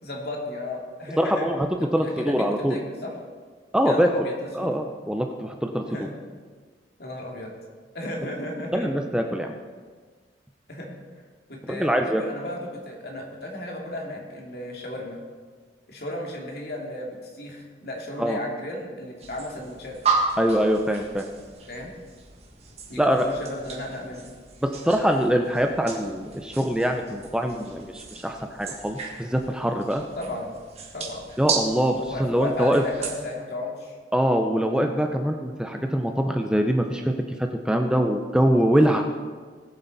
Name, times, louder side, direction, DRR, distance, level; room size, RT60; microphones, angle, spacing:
voice 1, 0.0-1.5 1.8-3.1 3.8-4.7 5.8-6.2 7.0-7.5 7.9-8.9 10.7-11.0 11.5-15.2 15.9-20.0 21.7-21.9 22.9-24.3 30.2-30.6 30.9-31.3 32.0-34.0, left 1 dB, 60° left, -1 dB, 2.5 m, -34 dB
voice 2, 1.2-1.7 1.9-2.8 3.7-4.1 4.5-5.8 8.7-9.5 11.7-12.2 18.2-18.4 20.4-21.2 23.0-23.3 24.6-30.0 31.4-32.8 34.1-37.1 37.7-39.2, equal, 5° right, 4 dB, 0.6 m, -23 dB
sound 1, 19.2-33.2, right 4 dB, 35° right, 1.6 m, -34 dB
20.0 x 7.5 x 4.1 m, 1.5 s
head